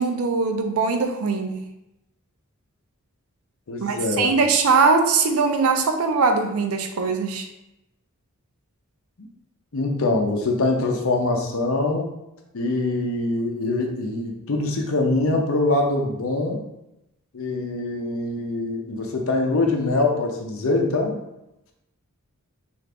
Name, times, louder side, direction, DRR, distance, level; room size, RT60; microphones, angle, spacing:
voice 1, 0.0-1.6 3.8-7.5, right 4 dB, 80° right, 6 dB, 0.5 m, -21 dB
voice 2, 3.7-4.3 9.2-9.3 9.7-12.1 12.5-16.6 17.3-21.2, left 2 dB, 65° left, 2 dB, 0.7 m, -23 dB
3.7 x 2.6 x 3.4 m, 0.89 s
head